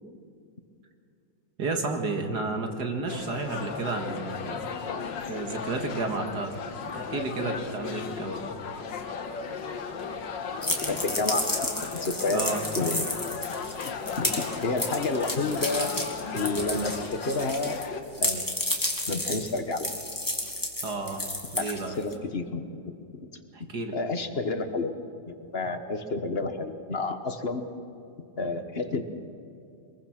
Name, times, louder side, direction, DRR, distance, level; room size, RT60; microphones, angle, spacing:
voice 1, 1.6-4.7 5.2-6.5 6.9-8.4 12.3-12.6 20.8-21.2 21.5-21.9 23.5-23.9, right 3 dB, 65° right, 4 dB, 2.4 m, -31 dB
sound 1, 3.1-18.0, left 5 dB, 85° left, 2.0 m, -35 dB
voice 2, 10.6-11.5 11.9-12.4 12.7-13.1 14.2-14.3 14.6-15.9 16.3-17.8 18.2-18.4 19.1-19.9 21.6-22.6 23.1-23.3 23.9-24.9 25.3-27.6 28.4-29.0, left 3 dB, 35° left, 7 dB, 1.3 m, -30 dB
sound 2, 10.6-17.8 18.1-22.1, left 1 dB, 10° left, 2.3 m, -31 dB
23.0 x 21.5 x 6.0 m, 2.7 s
omnidirectional pair, 1.9 m